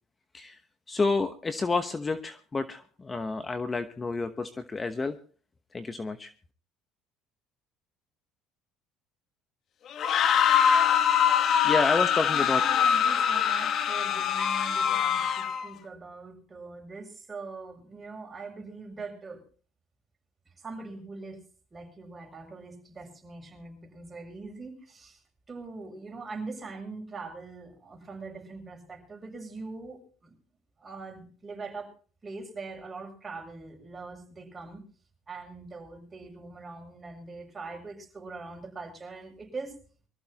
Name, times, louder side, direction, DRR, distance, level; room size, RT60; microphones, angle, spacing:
voice 1, 0.9-5.2 5.7-6.3 11.6-12.6, left 3 dB, 20° left, 10 dB, 1.0 m, -29 dB
sound 1, 9.9-15.7, left 8 dB, 50° left, 1.4 m, -24 dB
voice 2, 12.3-19.4 20.5-21.4 21.7-25.2 25.5-30.4 30.8-31.9 32.2-34.8 35.3-39.8, right 3 dB, 20° right, 2 dB, 6.9 m, -42 dB
24.0 x 14.5 x 2.9 m, 0.41 s
cardioid pair, 110°, 0 cm